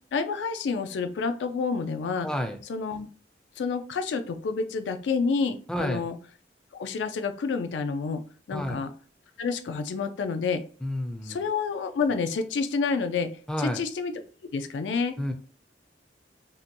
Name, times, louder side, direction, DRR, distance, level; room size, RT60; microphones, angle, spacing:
voice 1, 0.1-2.3 2.7-3.1 3.6-6.2 6.7-8.2 8.5-8.9 9.4-10.6 11.2-13.3 13.6-14.1 14.5-15.2, left 5 dB, 85° left, 9 dB, 0.3 m, -29 dB
voice 2, 2.2-2.6 5.7-6.0 8.5-8.8 10.8-11.4 13.5-13.8 15.2-15.3, left 1 dB, 5° left, 5 dB, 0.3 m, -30 dB
2.7 x 2.2 x 2.6 m, 0.39 s
head